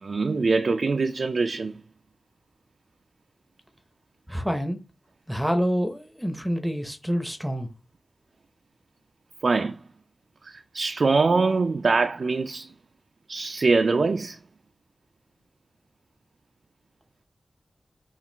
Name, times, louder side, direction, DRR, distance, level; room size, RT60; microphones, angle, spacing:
voice 1, 0.0-1.7 9.4-9.8 10.4-12.7 13.3-14.4, right 4 dB, 55° right, 0.3 m, -23 dB
voice 2, 4.3-4.8 5.3-7.7, equal, ahead, 0.6 m, -27 dB
5.8 x 2.4 x 3.3 m
wide cardioid pair, 115°, 0 cm